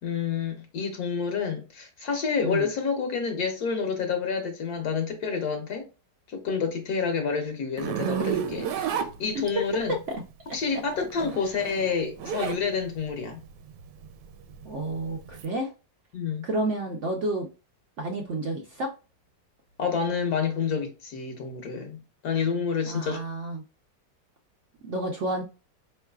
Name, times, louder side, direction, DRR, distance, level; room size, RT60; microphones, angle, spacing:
voice 1, 0.0-5.9 6.3-9.9 10.5-13.4 16.1-16.5 19.8-23.2, left 5 dB, 65° left, 1.2 m, -29 dB
Zipper (clothing), 7.8-9.8 11.0-12.6 13.0-15.4, right 9 dB, 80° right, 1.2 m, -31 dB
voice 2, 9.9-10.2 10.5-10.6 14.6-15.7 16.4-17.5 18.0-18.9 22.9-23.6 24.8-25.4, right 1 dB, 65° right, 0.8 m, -30 dB
4.5 x 3.1 x 2.2 m
omnidirectional pair, 1.8 m